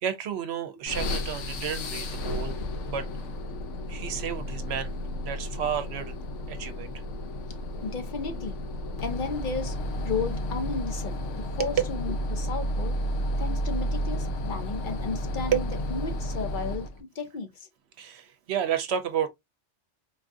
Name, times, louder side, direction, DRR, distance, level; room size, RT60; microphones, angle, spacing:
voice 1, 0.0-2.6 2.9-3.1 3.9-5.0 5.3-6.2 6.5-6.9 11.6-11.7 15.5-15.7 18.0-19.3, right 9 dB, 70° right, 0.8 m, -31 dB
sound 1, 0.9-17.0, equal, 90° left, 1.0 m, -32 dB
voice 2, 7.8-8.6 9.0-9.7 10.0-12.9 13.4-16.9 17.2-17.7, left 4 dB, 50° left, 0.7 m, -34 dB
4.0 x 2.4 x 2.5 m
omnidirectional pair, 1.2 m